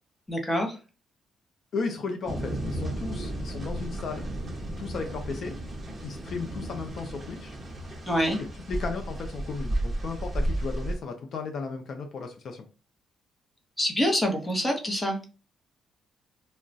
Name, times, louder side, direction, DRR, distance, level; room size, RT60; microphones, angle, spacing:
voice 1, 0.3-0.8 8.1-8.4 13.8-15.2, equal, 10° left, 2 dB, 0.9 m, -26 dB
voice 2, 1.7-4.3 4.8-5.6 6.0-7.5 8.7-12.7, left 4 dB, 60° left, 4 dB, 0.5 m, -35 dB
sound 1, 2.3-10.9, right 1 dB, 15° right, 1.1 m, -33 dB
2.3 x 2.1 x 3.8 m, 0.34 s
cardioid pair, 90°, 0 cm